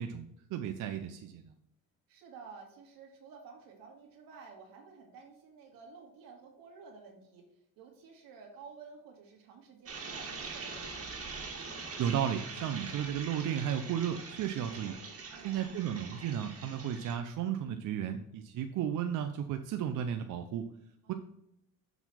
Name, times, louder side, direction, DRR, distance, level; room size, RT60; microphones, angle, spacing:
voice 1, 0.0-1.5 12.0-14.9 15.4-20.7 21.1-21.2, right 9 dB, 60° right, 7 dB, 0.6 m, -34 dB
voice 2, 2.1-11.0 15.3-15.7 21.0-21.1, right 5 dB, 90° right, 1 dB, 2.2 m, -52 dB
sound 1, 9.9-17.1, right 4 dB, 40° right, 2.0 m, -43 dB
7.0 x 4.1 x 5.8 m, 0.80 s
cardioid pair, 115°, 34 cm